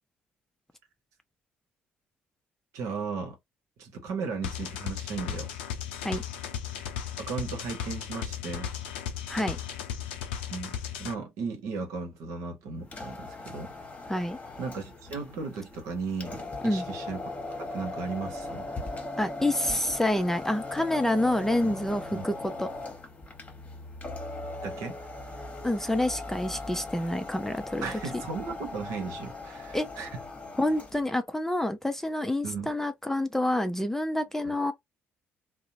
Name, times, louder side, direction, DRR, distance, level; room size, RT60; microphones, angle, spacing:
voice 1, 2.7-3.4 3.8-5.5 7.2-8.7 10.5-13.7 14.6-17.2 17.6-18.7 21.6-21.7 22.1-22.2 24.6-25.0 27.8-30.2 32.4-32.7, right 4 dB, 65° right, 0.9 m, -36 dB
sound 1, 4.4-11.1, left 9 dB, 80° left, 0.4 m, -36 dB
sound 2, 12.8-31.1, left 2 dB, 25° left, 1.1 m, -39 dB
voice 2, 19.2-22.3 22.6-22.7 25.6-27.9 29.7-29.9 30.6-34.7, left 1 dB, 5° left, 0.5 m, -27 dB
2.8 x 2.0 x 2.6 m
hypercardioid pair, 50°, 6 cm